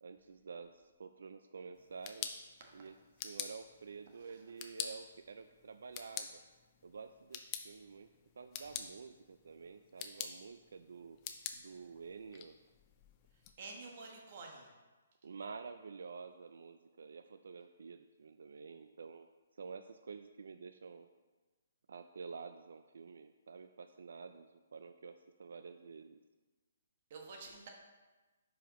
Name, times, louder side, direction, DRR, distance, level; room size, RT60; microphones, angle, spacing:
voice 1, 0.0-2.3 2.7-2.9 3.2-6.4 6.8-7.4 7.6-8.1 8.4-11.2 11.6-12.6 15.2-19.3 19.6-21.1 21.9-26.2, right 5 dB, 75° right, 9 dB, 0.3 m, -49 dB
sound 1, 1.8-13.5, left 9 dB, 25° left, 0.4 m, -48 dB
voice 2, 13.6-14.7 27.1-27.7, right 3 dB, 40° right, 1 dB, 1.2 m, -49 dB
10.0 x 4.8 x 3.1 m, 1.3 s
hypercardioid pair, 165°, 0 cm